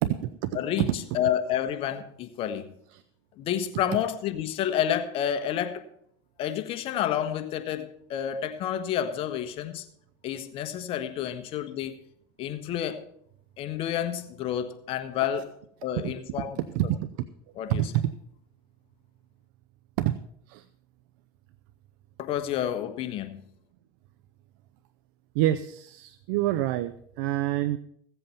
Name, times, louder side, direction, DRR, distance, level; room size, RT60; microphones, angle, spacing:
voice 1, 0.0-0.9 2.9-3.0 16.0-16.5 16.7-17.1 17.7-18.1 20.0-20.2 20.5-20.6 25.3-27.8, right 13 dB, 70° right, 0.6 m, -27 dB
voice 2, 0.5-2.7 3.4-5.8 6.4-9.8 10.2-11.9 12.4-13.1 13.6-15.5 15.8-16.6 17.5-17.9 22.2-23.4, left 10 dB, 55° left, 1.4 m, -29 dB
16.0 x 7.8 x 5.6 m
supercardioid pair, 95°, 12 cm